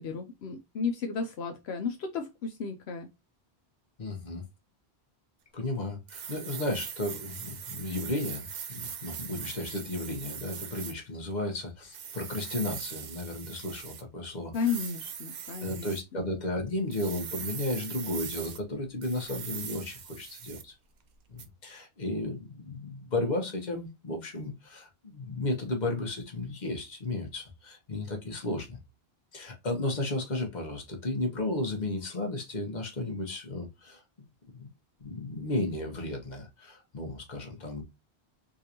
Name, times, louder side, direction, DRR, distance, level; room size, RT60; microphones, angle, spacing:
voice 1, 0.0-3.1 14.5-16.3, left 5 dB, 75° left, 0.9 m, -33 dB
voice 2, 4.0-4.4 5.5-14.5 15.6-20.7 21.3-28.8 29.3-34.0 34.6-34.7 35.0-37.8, left 2 dB, 45° left, 1.3 m, -34 dB
sound 1, 6.1-10.9 11.9-14.0 14.5-16.0 16.9-18.6 19.0-20.7 21.4-21.5, right 8 dB, 55° right, 0.6 m, -41 dB
3.9 x 2.6 x 2.8 m
omnidirectional pair, 1.1 m